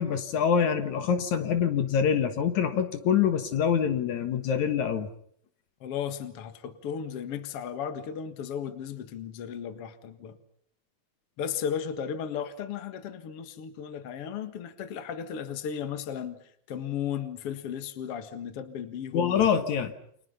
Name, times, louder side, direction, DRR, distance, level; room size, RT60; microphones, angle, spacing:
voice 1, 0.0-5.1 19.1-19.9, left 7 dB, 70° left, 9 dB, 2.9 m, -25 dB
voice 2, 5.8-10.4 11.4-16.4 16.7-19.4, left 8 dB, 55° left, 10 dB, 2.4 m, -35 dB
29.5 x 27.0 x 5.7 m, 0.65 s
omnidirectional pair, 3.5 m